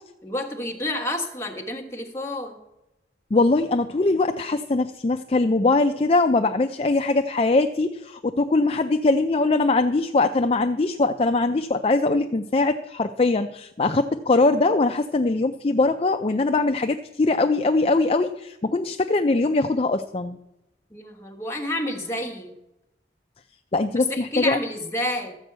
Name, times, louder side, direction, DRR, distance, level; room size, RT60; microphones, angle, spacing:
voice 1, 0.2-2.6 20.9-22.5 23.9-25.4, left 1 dB, 15° left, 1 dB, 1.5 m, -29 dB
voice 2, 3.3-20.4 23.7-24.6, left 3 dB, 30° left, 7 dB, 0.4 m, -21 dB
13.5 x 5.4 x 8.0 m, 0.92 s
head